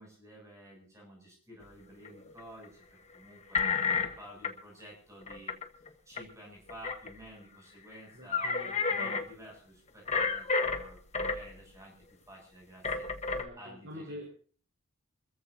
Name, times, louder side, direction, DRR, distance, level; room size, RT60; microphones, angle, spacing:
voice 1, 0.0-2.8 3.1-5.6 6.1-14.2, equal, 15° right, -2 dB, 7.6 m, -52 dB
sound 1, 2.0-2.6 3.5-4.1 4.4-4.5 5.3-5.9 6.2-6.3 6.7-7.1 8.0-8.1 8.3-9.2 10.1-11.5 12.8-13.4, left 4 dB, 30° left, 1.3 m, -30 dB
voice 2, 8.1-8.9 13.3-14.2, equal, 55° right, -1 dB, 4.5 m, -46 dB
25.5 x 14.5 x 2.8 m, 0.42 s
head